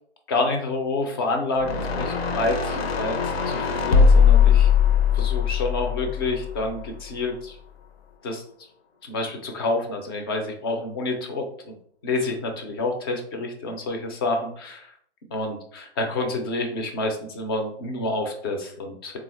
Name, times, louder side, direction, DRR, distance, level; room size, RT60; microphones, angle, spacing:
voice 1, 0.3-3.2 3.5-4.7 5.1-7.6 8.2-8.4 9.0-11.7 12.0-14.9 15.3-19.2, left 2 dB, 20° left, 3 dB, 0.4 m, -28 dB
sound 1, 1.6-6.9, left 6 dB, 60° left, 0.7 m, -20 dB
3.6 x 2.3 x 3.1 m, 0.63 s
figure-of-eight pair, 125°, 33 cm